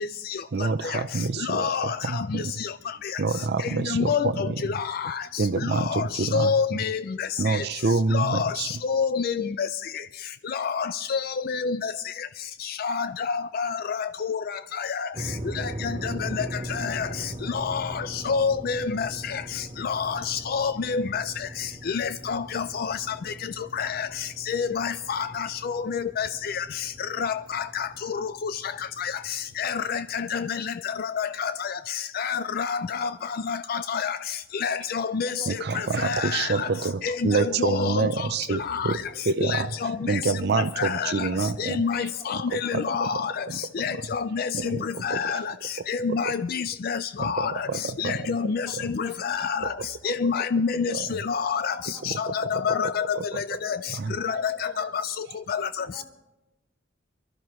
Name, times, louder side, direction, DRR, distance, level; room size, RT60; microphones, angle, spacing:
voice 1, 0.5-2.5 3.2-4.7 5.4-6.5 7.4-8.8 35.5-39.0 39.3-44.1 44.5-45.5 46.1-46.3 47.2-48.9 49.6-50.3 50.9-51.2 52.0-53.4 53.9-54.7 55.6-55.7, right 4 dB, 55° right, 12 dB, 0.5 m, -28 dB
voice 2, 1.4-2.7 3.9-5.2 5.7-7.6 8.1-9.7 10.5-11.9 12.8-14.4 14.8-15.1 15.8-17.1 17.5-19.4 19.8-21.2 21.9-23.0 23.7-24.1 24.5-26.6 27.2-28.5 29.0-29.1 29.6-31.7 32.1-33.1 33.5-34.2 34.6-35.3 35.7-36.7 37.0-39.0 39.4-40.2 40.8-41.3 41.6-43.4 43.8-45.4 45.9-47.7 48.0-48.7 48.9-49.7 50.0-51.7 52.0-53.8 54.2-54.9 55.5-55.8, left 6 dB, 50° left, 13 dB, 0.4 m, -28 dB
sound 1, 15.1-30.4, right 1 dB, 35° right, 1.2 m, -40 dB
voice 3, 35.1-35.8 40.0-40.1 40.6-40.7 41.6-42.6 42.9-43.2 44.4-44.9 48.7-48.8 49.0-49.2 49.5-49.6 50.0-50.1 51.1-52.1 52.6-53.0 53.7-54.9 55.8-56.0, left 2 dB, 10° left, -2 dB, 3.7 m, -48 dB
23.5 x 13.0 x 3.1 m, 0.95 s
head